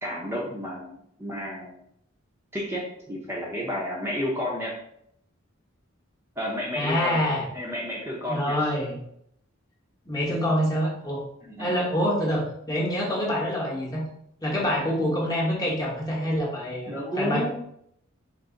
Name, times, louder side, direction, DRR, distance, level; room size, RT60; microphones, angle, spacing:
voice 1, 0.0-1.8 2.5-4.7 6.4-7.2 7.5-8.7 11.4-11.7 16.9-17.5, equal, 10° right, -4 dB, 0.7 m, -31 dB
voice 2, 6.7-7.4 8.2-9.0 10.1-11.2 11.6-14.0 14.4-16.9 17.2-17.5, equal, 20° left, -4 dB, 1.0 m, -26 dB
3.9 x 2.6 x 3.7 m, 0.71 s
head